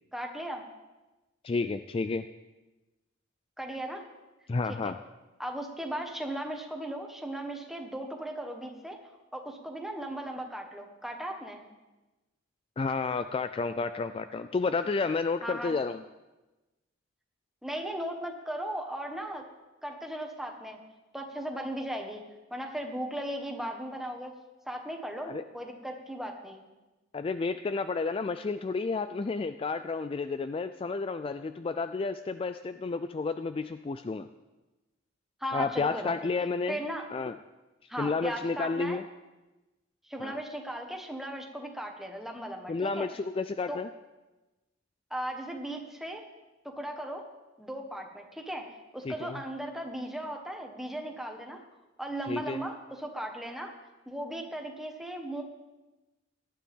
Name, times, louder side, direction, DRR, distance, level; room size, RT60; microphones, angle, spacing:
voice 1, 0.1-0.6 3.6-4.0 4.8-4.9 5.4-9.0 9.3-11.6 15.4-15.7 17.6-19.4 19.8-20.8 21.1-22.2 22.5-24.4 24.6-26.6 35.4-36.1 36.7-37.0 37.9-39.0 40.1-43.1 43.7-43.8 45.1-46.2 46.6-47.2 47.6-48.7 48.9-51.6 52.0-53.7 54.1-55.4, right 1 dB, ahead, 2 dB, 1.4 m, -37 dB
voice 2, 1.4-2.3 4.5-5.0 12.8-16.0 25.2-25.4 27.1-34.3 35.5-36.8 37.1-37.4 38.0-39.0 40.2-40.4 42.7-43.9 49.0-49.4 52.3-52.6, left 4 dB, 30° left, 10 dB, 0.3 m, -31 dB
18.0 x 12.0 x 3.6 m, 1.1 s
head